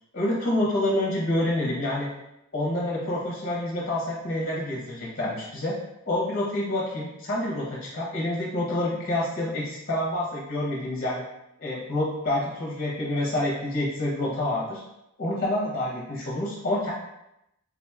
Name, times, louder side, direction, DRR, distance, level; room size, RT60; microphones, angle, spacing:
voice 1, 0.1-2.1 2.5-5.8 6.1-11.2 11.6-14.8 15.2-16.9, left 1 dB, 40° left, -4 dB, 0.7 m, -27 dB
3.7 x 2.8 x 2.3 m, 0.86 s
head